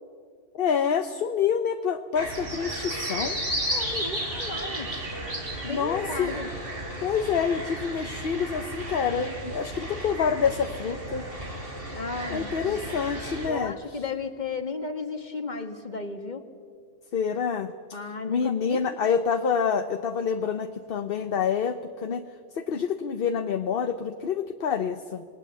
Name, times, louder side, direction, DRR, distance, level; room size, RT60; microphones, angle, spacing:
voice 1, 0.5-3.4 5.7-6.3 7.0-11.3 12.3-14.0 17.1-17.7 18.3-22.2 22.5-25.2, left 6 dB, 55° left, 8 dB, 1.0 m, -27 dB
sound 1, 2.1-13.5, right 1 dB, 50° right, 4.0 m, -34 dB
voice 2, 3.7-4.9 5.6-6.5 11.9-13.0 13.5-16.5 17.9-18.8, left 4 dB, 40° left, 6 dB, 1.9 m, -34 dB
28.5 x 19.5 x 8.4 m, 2.1 s
omnidirectional pair, 1.2 m